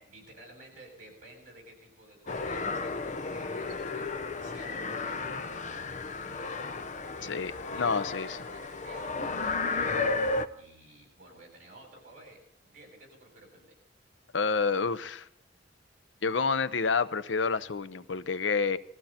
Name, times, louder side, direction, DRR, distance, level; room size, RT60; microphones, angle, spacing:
voice 1, 0.0-5.8 6.0-6.7 7.0-13.8, right 2 dB, 45° right, 1 dB, 7.8 m, -54 dB
sound 1, 2.3-10.5, left 3 dB, 40° left, 0.7 m, -33 dB
voice 2, 7.3-8.4 14.3-15.3 16.2-18.8, left 5 dB, 85° left, 14 dB, 0.8 m, -29 dB
21.0 x 15.0 x 4.4 m, 0.73 s
head